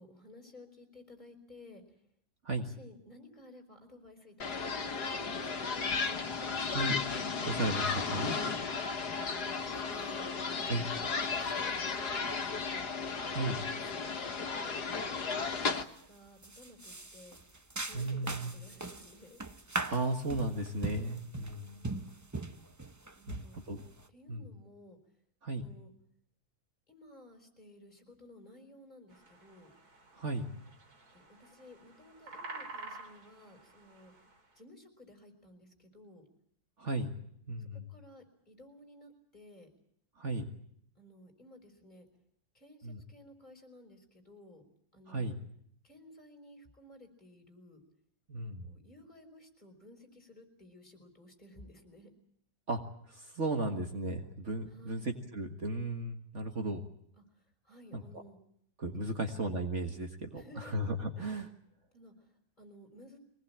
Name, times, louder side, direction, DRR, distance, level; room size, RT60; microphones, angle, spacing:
voice 1, 0.0-1.8 2.6-6.0 9.3-12.8 13.7-15.8 16.1-17.4 17.8-19.4 21.6-22.1 23.2-23.6 24.1-25.0 25.6-25.9 26.9-29.7 31.1-34.1 34.6-36.2 37.6-39.7 41.0-42.1 42.5-44.6 44.9-45.4 45.8-47.8 48.6-52.1 54.7-55.2 57.2-57.3 57.6-58.4 59.0-59.3 60.3-60.7 61.9-63.2, left 1 dB, 25° left, 4 dB, 5.3 m, -55 dB
sound 1, 4.4-15.8, left 5 dB, 85° left, 1.9 m, -34 dB
voice 2, 6.7-7.0 7.4-8.4 10.7-10.9 13.3-13.6 17.9-18.5 19.9-21.9 23.3-23.8 24.3-24.5 25.4-25.6 30.1-30.5 36.8-37.1 37.5-37.9 40.2-40.4 42.8-43.0 45.1-45.4 48.3-48.7 52.7-52.8 53.1-56.9 57.9-58.0 58.8-61.5, right 2 dB, 50° right, 4 dB, 1.9 m, -35 dB
sound 2, 15.8-16.1 16.4-24.1, right 2 dB, 15° right, 0.6 m, -41 dB
sound 3, 29.1-34.4, right 3 dB, 70° right, 3.7 m, -50 dB
24.0 x 19.5 x 8.7 m, 0.71 s
omnidirectional pair, 1.7 m